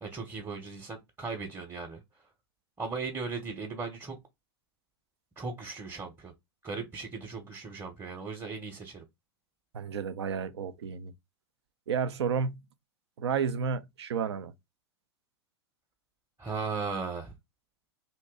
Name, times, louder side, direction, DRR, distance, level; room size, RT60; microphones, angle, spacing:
voice 1, 0.0-2.2 2.8-4.2 5.4-6.3 6.6-9.0 16.4-17.3, right 4 dB, 15° right, 0.9 m, -37 dB
voice 2, 9.7-11.1 11.9-12.6 13.2-14.5, right 6 dB, 75° right, 0.6 m, -31 dB
3.0 x 2.7 x 3.6 m
hypercardioid pair, 105°, 14 cm